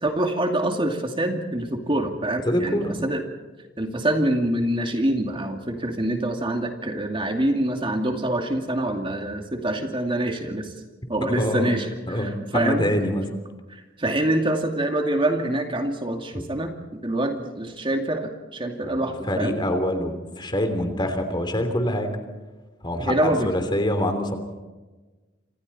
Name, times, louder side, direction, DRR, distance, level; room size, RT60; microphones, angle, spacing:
voice 1, 0.0-3.2 3.8-10.7 11.1-12.9 13.7-19.6 23.1-23.5, right 1 dB, 25° right, 3 dB, 2.4 m, -25 dB
voice 2, 2.4-2.9 11.3-11.8 12.1-13.2 18.8-19.0 19.3-22.2 22.8-24.4, left 1 dB, 25° left, 7 dB, 3.3 m, -25 dB
28.0 x 26.5 x 4.3 m, 1.2 s
head